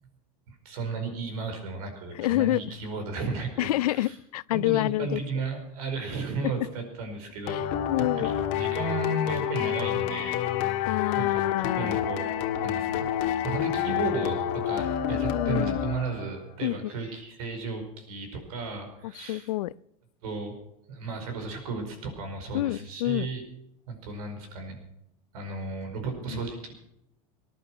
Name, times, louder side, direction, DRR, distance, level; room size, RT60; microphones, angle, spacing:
voice 1, 0.5-4.1 4.5-7.6 8.2-10.8 11.1-11.4 11.7-12.3 12.6-13.1 13.4-19.5 20.2-20.5 20.9-23.4 23.9-24.8 25.3-26.7, right 3 dB, 75° right, 5.0 m, -34 dB
voice 2, 2.1-2.7 3.6-5.2 6.4-6.7 7.5-8.3 10.9-12.0 13.9-14.0 15.3-15.8 16.6-16.9 19.0-19.7 22.5-23.3 26.3-26.4, left 16 dB, 85° left, 0.5 m, -28 dB
sound 1, 7.5-16.4, left 10 dB, 65° left, 1.6 m, -28 dB
19.0 x 11.0 x 5.9 m
supercardioid pair, 110°, 19 cm